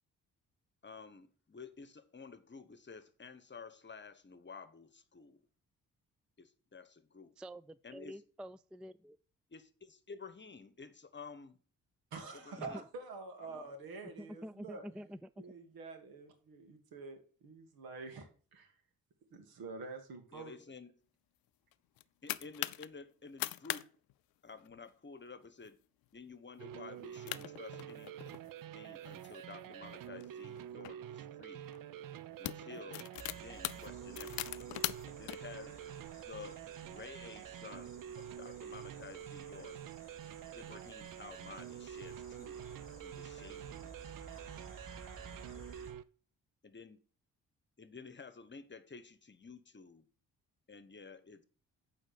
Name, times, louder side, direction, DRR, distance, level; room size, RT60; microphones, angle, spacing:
voice 1, 0.8-5.5 6.4-7.3 7.8-8.2 9.5-11.6 12.3-12.8 13.4-13.7 20.3-20.9 22.2-23.9 24.4-25.8 26.1-28.1 28.7-31.7 32.4-33.1 33.4-34.7 35.2-35.8 36.3-39.8 40.5-42.6 43.0-44.1 46.6-47.0 47.8-50.1 50.7-51.4, left 5 dB, 30° left, 1.1 m, -52 dB
voice 2, 7.4-9.2 12.6-12.8 14.0-15.4, equal, 5° right, 0.3 m, -48 dB
voice 3, 12.1-14.8 15.4-18.7 19.3-20.6, right 3 dB, 85° right, 1.9 m, -47 dB
sound 1, 21.7-22.9 23.3-23.8 24.1-24.2 24.5-24.9 25.4-25.7 26.1-26.2 27.0-27.1 27.3-28.5 29.1-30.9 31.7-31.9 32.2-35.4, left 17 dB, 80° left, 0.5 m, -41 dB
sound 2, 26.6-46.0, right 10 dB, 65° right, 0.6 m, -47 dB
sound 3, 33.2-45.9, right 3 dB, 35° right, 3.4 m, -55 dB
8.9 x 3.9 x 7.0 m
supercardioid pair, 60°, 35 cm